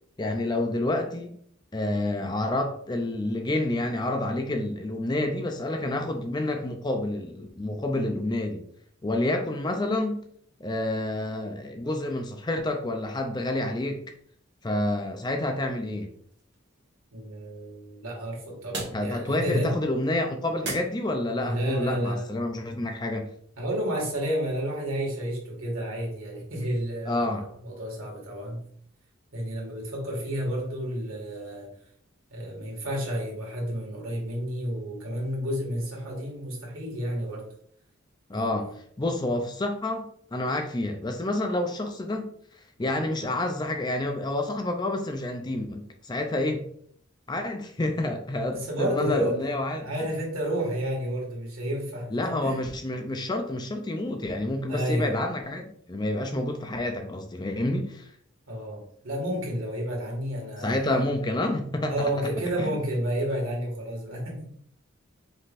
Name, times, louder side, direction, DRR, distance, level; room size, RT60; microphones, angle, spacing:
voice 1, 0.2-1.3 1.7-8.7 9.0-10.2 10.6-14.0 14.6-16.1 18.9-23.3 27.1-27.4 38.3-42.3 42.8-46.7 47.3-50.1 52.1-58.1 60.6-62.1 62.6-62.7, left 1 dB, 20° left, 5 dB, 0.4 m, -29 dB
sound 1, 15.5-21.5, right 2 dB, 55° right, 1.5 m, -43 dB
voice 2, 17.1-19.8 21.4-22.3 23.6-28.6 29.3-31.7 32.3-37.5 38.3-38.8 48.5-49.4 49.8-52.6 54.7-55.1 58.5-60.8 61.9-64.5, equal, 90° right, -1 dB, 1.9 m, -31 dB
5.3 x 3.6 x 2.5 m, 0.63 s
head